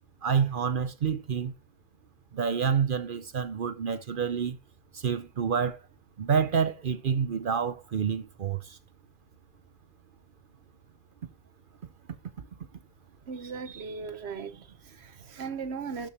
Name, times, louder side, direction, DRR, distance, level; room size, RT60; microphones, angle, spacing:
voice 1, 0.2-1.5 2.3-4.6 4.9-5.8 6.2-8.8, right 7 dB, 55° right, 0.8 m, -28 dB
voice 2, 13.2-16.1, right 5 dB, 80° right, 1.3 m, -38 dB
12.5 x 6.4 x 3.0 m
omnidirectional pair, 1.1 m